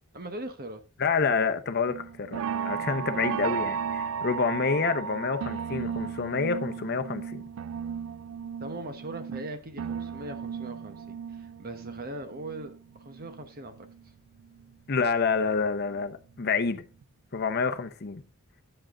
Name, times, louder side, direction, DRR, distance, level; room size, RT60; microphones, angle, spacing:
voice 1, 0.1-0.8 8.6-12.7 13.0-13.9, right 1 dB, 45° right, 1.1 m, -40 dB
voice 2, 1.0-7.4 14.9-16.8 17.3-18.2, left 5 dB, 50° left, 0.7 m, -28 dB
sound 1, 1.9-14.0 14.4-16.0 16.4-16.7 17.0-17.1, right 7 dB, 75° right, 0.3 m, -35 dB
8.9 x 7.5 x 3.7 m
head